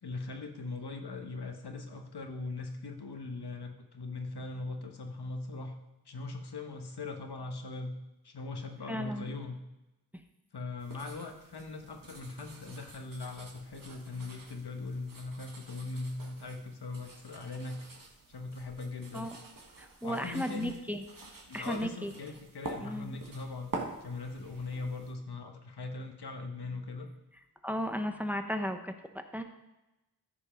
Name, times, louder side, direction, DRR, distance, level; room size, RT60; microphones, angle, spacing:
voice 1, 0.0-5.7 6.1-8.0 8.2-9.6 10.5-17.8 18.3-19.3 20.0-20.7 21.5-23.7 24.0-27.1, left 3 dB, 85° left, 4 dB, 1.2 m, -40 dB
voice 2, 8.9-9.3 10.1-10.2 19.1-19.4 19.8-21.0 21.5-22.1 22.8-23.2 27.6-29.4, equal, 5° right, 6 dB, 0.8 m, -35 dB
sound 1, 10.8-25.1, right 3 dB, 60° right, 1.7 m, -47 dB
14.0 x 5.3 x 5.1 m, 0.97 s
wide cardioid pair, 80°, 38 cm